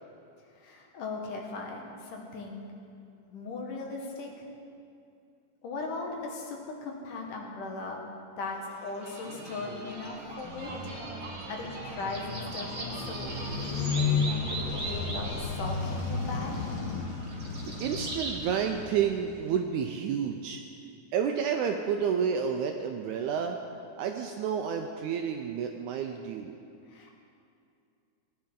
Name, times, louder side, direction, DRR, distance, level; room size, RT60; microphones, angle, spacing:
voice 1, 0.6-2.7 3.3-4.5 5.6-8.0 8.4-10.8 11.5-13.4 13.7-16.7 26.9-27.1, left 3 dB, 70° left, 0 dB, 2.8 m, -38 dB
sound 1, 8.7-18.4, right 2 dB, 40° right, 1.4 m, -40 dB
sound 2, 10.4-15.9, left 6 dB, 40° left, 2.4 m, -34 dB
Motorcycle, 13.0-19.7, left 3 dB, 90° left, 3.9 m, -37 dB
voice 2, 17.1-23.6 24.0-26.6, right 7 dB, 85° right, 4 dB, 1.8 m, -30 dB
18.0 x 10.5 x 3.8 m, 2.5 s
omnidirectional pair, 3.9 m